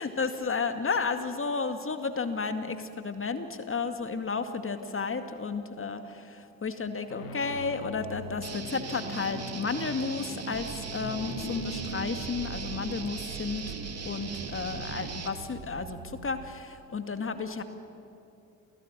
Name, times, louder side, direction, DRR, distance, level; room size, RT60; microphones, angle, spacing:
voice 1, 0.0-13.7 14.0-17.6, left 4 dB, 30° left, 8 dB, 2.2 m, -32 dB
sound 1, 5.6-6.1 6.8-15.5, left 2 dB, 55° left, 3.5 m, -44 dB
Guitar, 8.4-15.3, right 5 dB, 35° right, 2.5 m, -39 dB
sound 2, 10.5-16.6, right 7 dB, 60° right, 1.4 m, -43 dB
28.5 x 17.0 x 9.0 m, 2.7 s
figure-of-eight pair, 45°, 42 cm